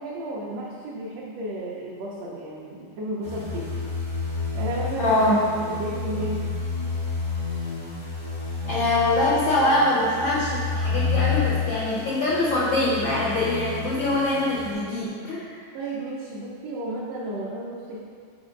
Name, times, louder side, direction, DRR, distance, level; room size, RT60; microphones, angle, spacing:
voice 1, 0.0-3.9 4.5-5.2 5.7-6.4 15.7-18.0, right 1 dB, 70° right, -6 dB, 1.6 m, -33 dB
sound 1, 3.2-14.7, left 4 dB, 60° left, 0.3 m, -30 dB
voice 2, 5.0-5.4 8.7-15.6, left 1 dB, 85° left, -6 dB, 1.0 m, -23 dB
5.0 x 4.4 x 5.1 m, 2.1 s
omnidirectional pair, 3.3 m